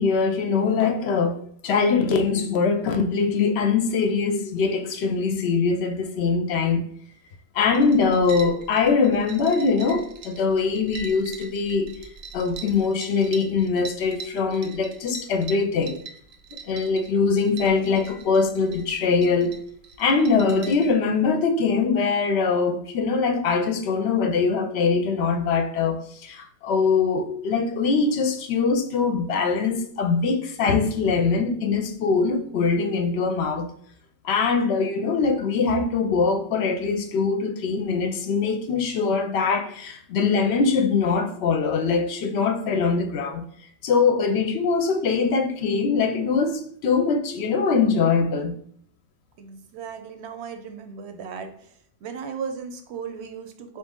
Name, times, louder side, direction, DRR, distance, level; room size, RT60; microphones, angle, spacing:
voice 1, 0.0-6.9 7.5-12.0 12.3-16.0 16.7-19.5 20.0-33.7 34.2-43.4 43.8-48.5, left 5 dB, 65° left, 0.7 m, -22 dB
sound 1, 7.6-20.9, right 4 dB, 90° right, 1.0 m, -43 dB
voice 2, 49.4-51.7 52.0-53.8, right 6 dB, 65° right, 0.8 m, -36 dB
4.2 x 2.9 x 3.5 m
omnidirectional pair, 1.3 m